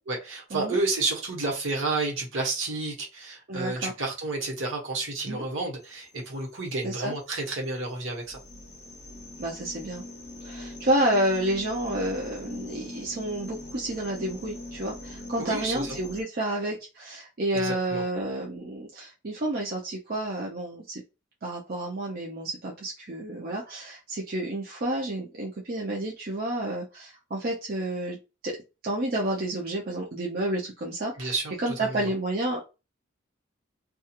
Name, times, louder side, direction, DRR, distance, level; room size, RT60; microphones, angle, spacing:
voice 1, 0.1-8.4 15.4-16.0 17.6-18.0 31.2-32.1, right 3 dB, 70° right, 1.1 m, -31 dB
voice 2, 3.5-3.9 5.3-5.4 6.8-7.1 9.4-10.0 10.4-21.0 21.4-28.2 28.4-28.5 28.8-32.7, right 1 dB, 45° right, 0.5 m, -30 dB
sound 1, 5.8-16.2, left 1 dB, 30° left, 0.5 m, -42 dB
2.4 x 2.3 x 2.8 m
head